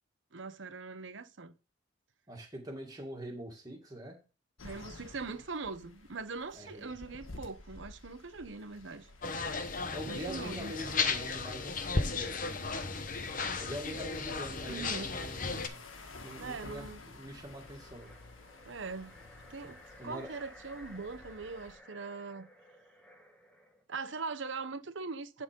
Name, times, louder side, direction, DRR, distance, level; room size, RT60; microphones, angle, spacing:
voice 1, 0.3-1.5 4.6-9.1 10.1-10.7 14.7-15.2 16.4-17.0 18.7-19.2 19.5-22.5 23.9-25.4, right 4 dB, 70° right, 0.9 m, -41 dB
voice 2, 2.3-4.2 6.6-6.9 9.9-12.3 13.6-15.8 16.2-18.1 20.0-20.3, equal, 20° right, 2.1 m, -44 dB
sound 1, 4.6-21.8, left 2 dB, 85° left, 1.6 m, -53 dB
sound 2, 9.2-15.7, left 4 dB, 40° left, 0.9 m, -35 dB
sound 3, 17.5-23.8, equal, 5° left, 1.5 m, -56 dB
11.0 x 4.0 x 5.2 m
head